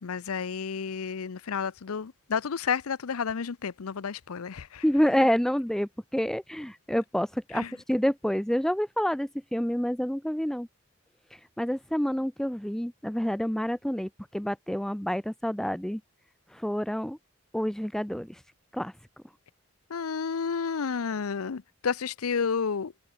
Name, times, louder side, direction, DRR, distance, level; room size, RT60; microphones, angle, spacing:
voice 1, 0.0-4.8 7.5-7.7 19.9-22.9, left 6 dB, 85° left, 0.6 m, -31 dB
voice 2, 4.8-10.7 11.6-16.0 16.5-17.2 17.5-18.4 18.7-18.9, equal, ahead, 0.4 m, -28 dB
head